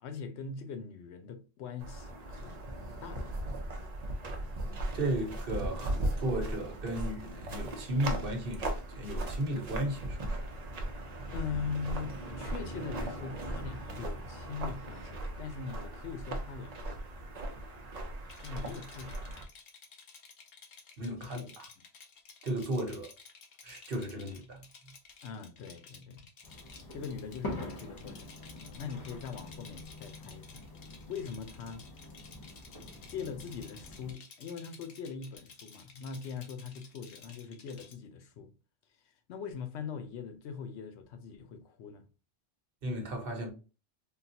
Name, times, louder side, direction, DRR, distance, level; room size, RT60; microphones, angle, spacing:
voice 1, 0.0-2.6 3.0-3.3 11.3-16.8 18.4-19.2 21.2-21.5 25.2-26.2 26.9-28.3 28.6-30.7 31.1-31.9 33.1-38.5 39.3-42.1, left 6 dB, 90° left, 0.9 m, -41 dB
sound 1, 1.8-19.4, right 1 dB, 45° right, 0.7 m, -38 dB
voice 2, 4.9-10.4 21.0-21.7 22.4-23.1 23.6-24.6 42.8-43.5, right 1 dB, 60° right, 1.0 m, -35 dB
Rattle, 18.3-38.0, left 5 dB, 65° left, 0.9 m, -54 dB
sound 2, 26.4-34.1, left 1 dB, 25° left, 0.5 m, -45 dB
3.6 x 2.3 x 2.7 m
omnidirectional pair, 1.1 m